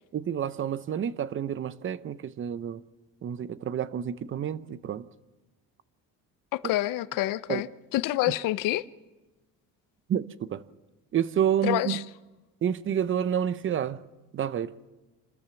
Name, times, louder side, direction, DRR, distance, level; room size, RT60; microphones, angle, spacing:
voice 1, 0.1-2.8 3.2-5.0 7.5-7.6 10.1-10.6 11.1-12.0 12.6-14.0 14.3-14.7, right 9 dB, 40° right, 0.7 m, -29 dB
voice 2, 6.5-7.7 7.9-8.8 11.6-12.0, left 16 dB, 75° left, 0.7 m, -27 dB
27.0 x 13.5 x 7.0 m
cardioid pair, 120°, 33 cm